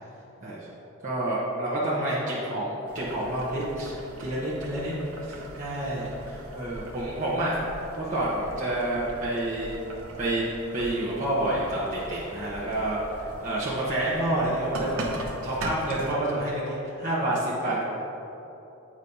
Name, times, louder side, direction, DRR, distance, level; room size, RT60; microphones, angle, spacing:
voice 1, 1.0-5.0 5.3-7.6 8.0-9.8 10.2-10.4 10.7-13.0 13.4-15.0 15.4-17.8, right 1 dB, 40° right, -8 dB, 1.0 m, -28 dB
Boiling, 2.9-16.1, right 1 dB, 90° right, 0.9 m, -41 dB
8.5 x 3.1 x 5.3 m, 3.0 s
head